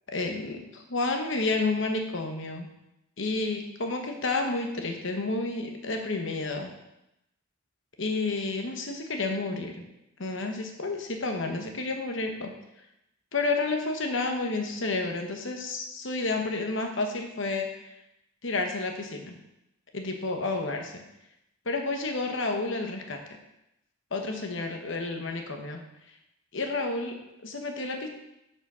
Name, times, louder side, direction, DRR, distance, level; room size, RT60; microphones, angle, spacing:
voice 1, 0.1-2.7 3.2-6.7 8.0-9.8 10.2-12.5 13.3-17.9 18.4-19.4 19.9-21.0 21.6-23.2 24.1-25.8 26.5-27.2 27.4-28.1, left 3 dB, 60° left, 4 dB, 1.1 m, -30 dB
6.9 x 5.7 x 5.6 m, 0.87 s
head